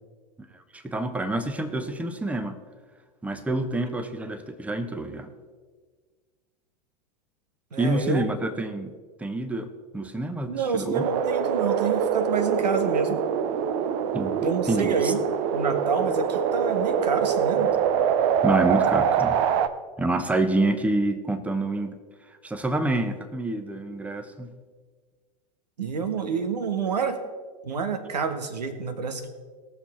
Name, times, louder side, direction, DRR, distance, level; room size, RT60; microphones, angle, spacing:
voice 1, 0.7-2.6 3.2-5.3 7.8-8.9 9.2-11.0 14.1-14.4 14.7-15.1 18.4-19.4 20.0-21.9 22.4-24.5, right 2 dB, 5° right, 9 dB, 1.0 m, -27 dB
voice 2, 7.7-8.2 10.5-13.2 14.4-15.2 15.5-17.7 25.8-27.2 27.6-29.3, right 5 dB, 75° right, 9 dB, 1.5 m, -28 dB
sound 1, 10.9-19.7, right 7 dB, 50° right, 0.8 m, -24 dB
19.0 x 7.1 x 4.3 m, 1.5 s
figure-of-eight pair, 95°, 21 cm